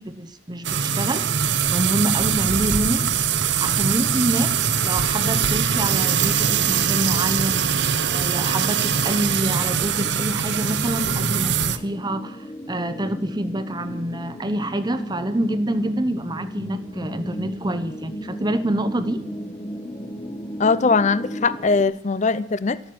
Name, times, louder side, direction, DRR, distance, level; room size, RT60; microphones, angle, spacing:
voice 1, 0.0-3.2 3.6-4.5 4.8-7.7 8.1-19.2, right 1 dB, 20° right, 0.9 m, -26 dB
sound 1, 0.6-11.8, right 7 dB, 65° right, 0.9 m, -22 dB
sound 2, 8.9-21.8, equal, 25° left, 1.1 m, -36 dB
voice 2, 20.6-22.8, left 4 dB, 40° left, 0.5 m, -20 dB
13.0 x 13.0 x 6.1 m
head